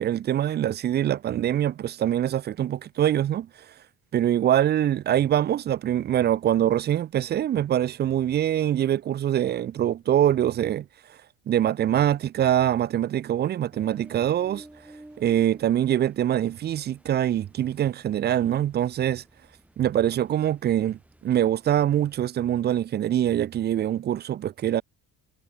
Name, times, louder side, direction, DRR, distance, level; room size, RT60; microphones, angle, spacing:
voice 1, 0.0-3.5 4.1-10.9 11.5-14.7 15.2-19.2 19.8-24.8, right 11 dB, 30° right, 0.3 m, -24 dB
Ocean, 13.7-22.3, right 1 dB, 5° right, 0.9 m, -53 dB
cardioid pair, 175°, 38 cm